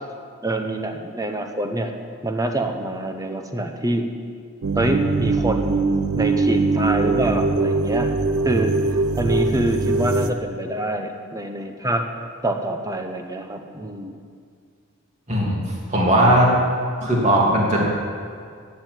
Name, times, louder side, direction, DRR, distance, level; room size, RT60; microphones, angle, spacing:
voice 1, 0.4-1.9 2.2-4.1 4.7-5.8 6.1-8.1 8.4-8.7 9.2-12.0 12.4-14.2, right 1 dB, 15° right, 5 dB, 0.8 m, -25 dB
sound 1, 4.6-10.3, right 3 dB, 80° right, 0.7 m, -22 dB
voice 2, 15.9-16.5 17.0-17.8, right 1 dB, 30° right, -4 dB, 2.7 m, -17 dB
10.5 x 7.4 x 9.2 m, 2.2 s
head